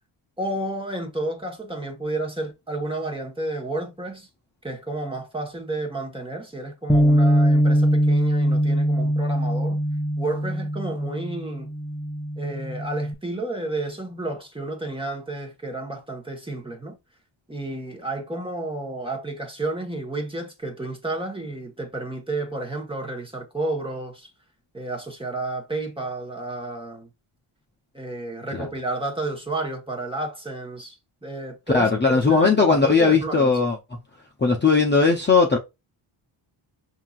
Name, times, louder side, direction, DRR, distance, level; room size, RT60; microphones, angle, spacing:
voice 1, 0.4-4.3 4.6-9.8 10.2-11.7 12.4-17.0 17.5-24.3 24.7-27.1 27.9-33.5, right 2 dB, 10° right, 1.3 m, -31 dB
Bass guitar, 6.9-13.1, equal, 5° left, 0.3 m, -22 dB
voice 2, 31.7-33.8 34.4-35.6, left 4 dB, 20° left, 0.7 m, -18 dB
5.7 x 2.8 x 2.5 m
wide cardioid pair, 105°, 48 cm